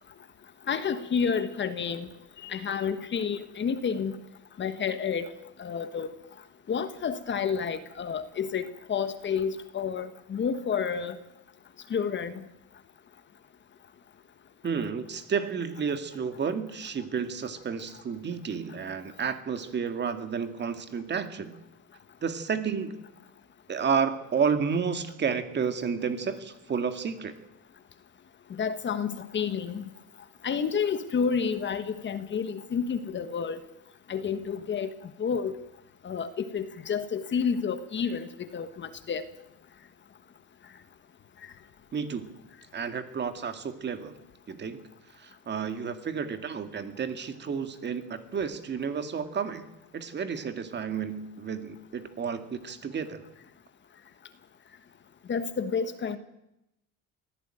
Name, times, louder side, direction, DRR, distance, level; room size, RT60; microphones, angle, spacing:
voice 1, 0.7-2.1 2.4-4.2 4.6-5.3 5.6-6.1 6.7-11.2 11.9-12.3 28.6-29.8 30.4-33.6 34.1-34.9 35.2-35.5 36.0-39.2 55.3-56.2, left 6 dB, 35° left, 11 dB, 1.4 m, -30 dB
voice 2, 14.6-21.6 22.2-23.0 23.7-27.3 41.9-42.4 42.7-44.2 44.5-44.8 45.2-49.6 49.9-53.2, right 6 dB, 30° right, 9 dB, 2.3 m, -31 dB
22.5 x 16.0 x 9.1 m, 0.89 s
cardioid pair, 145°, 33 cm